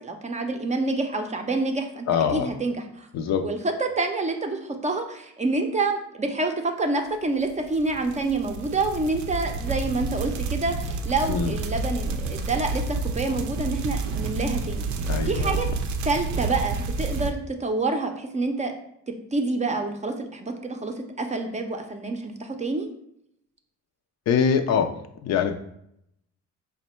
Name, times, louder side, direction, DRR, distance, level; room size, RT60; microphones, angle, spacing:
voice 1, 0.0-2.1 2.3-3.1 3.4-14.9 15.3-15.7 16.0-18.7 19.3-22.9, right 3 dB, 25° right, 4 dB, 0.5 m, -27 dB
voice 2, 2.1-2.5 3.1-3.5 11.3-11.6 15.1-15.6 24.3-24.9 25.2-25.6, left 7 dB, 60° left, 7 dB, 0.5 m, -23 dB
sound 1, 7.5-17.3, right 3 dB, 70° right, 0.5 m, -29 dB
4.2 x 2.2 x 4.2 m, 0.74 s
cardioid pair, 90°, 30 cm